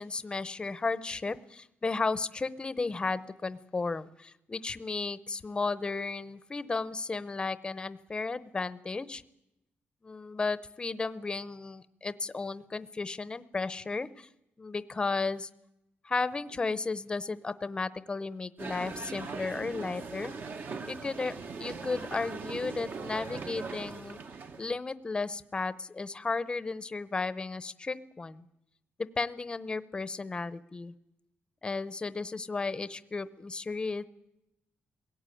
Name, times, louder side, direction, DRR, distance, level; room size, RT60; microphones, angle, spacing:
voice 1, 0.0-9.2 10.0-14.3 14.6-15.5 16.0-20.3 20.8-21.3 21.6-24.2 24.6-28.5 29.2-30.9 31.6-34.0, left 3 dB, 20° left, 15 dB, 0.8 m, -34 dB
sound 1, 18.6-24.8, right 4 dB, 50° right, 1.3 m, -40 dB
21.5 x 17.5 x 9.2 m, 0.88 s
cardioid pair, 140°, 4 cm